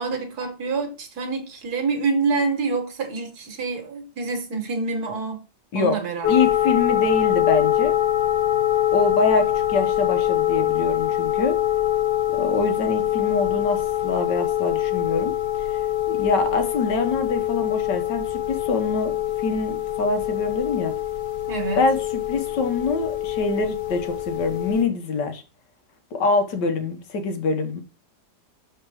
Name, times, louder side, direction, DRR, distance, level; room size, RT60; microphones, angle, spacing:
voice 1, 0.0-5.4 5.7-6.3 21.5-21.8, right 4 dB, 65° right, 1.8 m, -27 dB
sound 1, 6.2-24.8, left 12 dB, 50° left, 1.0 m, -24 dB
voice 2, 6.3-8.0 8.9-11.6 12.4-20.9 21.8-25.4 26.1-27.8, left 3 dB, 80° left, 1.7 m, -25 dB
6.2 x 4.3 x 4.8 m
omnidirectional pair, 1.9 m